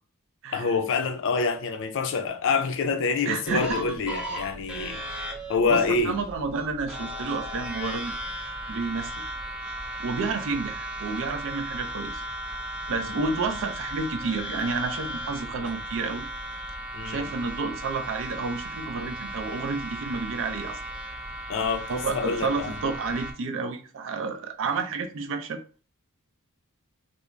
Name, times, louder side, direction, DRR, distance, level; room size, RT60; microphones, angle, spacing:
voice 1, 0.5-5.0 5.5-6.2 16.9-17.3 21.5-22.8, left 4 dB, 60° left, 0.4 m, -26 dB
voice 2, 3.3-3.8 5.6-5.8 6.0-8.2 8.7-9.3 10.0-12.2 12.9-16.3 17.1-20.8 21.9-25.6, right 4 dB, 60° right, 0.4 m, -30 dB
sound 1, 3.4-23.3, right 1 dB, 5° right, 0.5 m, -36 dB
2.4 x 2.0 x 3.1 m
head